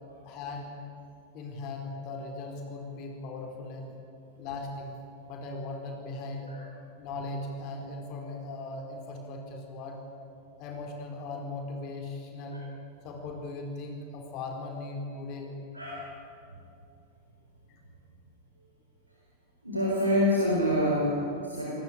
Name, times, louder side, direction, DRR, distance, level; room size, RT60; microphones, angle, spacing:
voice 1, 0.2-0.7 1.3-3.9 4.4-5.0 5.3-6.6 7.0-10.0 10.6-12.6 13.0-15.5 17.7-17.8, left 2 dB, 40° left, 2 dB, 4.3 m, -38 dB
voice 2, 15.7-16.1 19.6-21.7, left 1 dB, 85° right, -3 dB, 4.3 m, -26 dB
29.5 x 19.0 x 8.8 m, 2.7 s
figure-of-eight pair, 90°, 0 cm